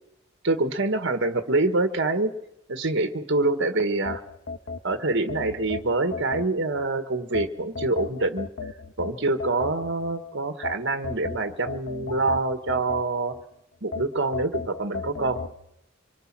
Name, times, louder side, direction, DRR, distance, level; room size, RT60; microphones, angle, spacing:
voice 1, 0.4-2.3 2.7-4.2 4.8-8.5 9.0-13.3 13.8-15.4, right 2 dB, 60° right, 8 dB, 1.6 m, -25 dB
sound 1, 4.1-6.8 7.3-10.1 10.6-13.4 13.9-15.6, left 4 dB, 60° left, 1.6 m, -35 dB
26.0 x 23.5 x 6.1 m, 0.85 s
head